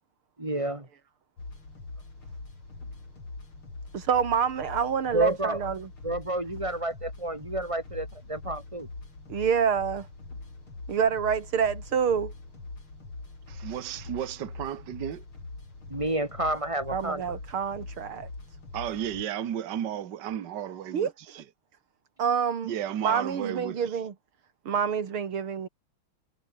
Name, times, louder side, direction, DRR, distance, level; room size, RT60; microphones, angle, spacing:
voice 1, 0.4-0.9 5.1-5.6 6.0-8.9 15.9-17.4, right 1 dB, 15° right, 3.3 m, -30 dB
sound 1, 1.4-19.2, left 3 dB, 90° left, 7.3 m, -43 dB
voice 2, 3.9-5.9 9.3-10.1 10.9-12.3 16.9-18.3 20.9-21.1 22.2-22.7 23.0-24.1 24.7-25.7, right 7 dB, 85° right, 3.0 m, -27 dB
voice 3, 13.5-15.2 18.7-21.4 22.6-24.0, right 10 dB, 60° right, 1.8 m, -34 dB
omnidirectional pair, 2.3 m